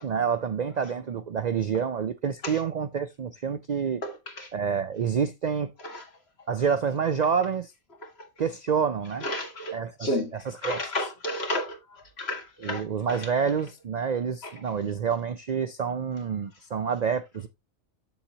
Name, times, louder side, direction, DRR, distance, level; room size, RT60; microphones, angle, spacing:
voice 1, 0.0-4.0 4.5-5.7 6.5-7.7 8.4-9.3 9.7-10.8 12.6-17.5, right 6 dB, 85° right, 0.3 m, -28 dB
voice 2, 4.0-4.5 5.8-6.0 8.0-8.1 9.2-10.4 10.6-11.8 12.2-12.8 13.1-13.2 14.4-14.5, left 1 dB, 50° left, 2.0 m, -32 dB
8.1 x 7.1 x 2.8 m
omnidirectional pair, 1.4 m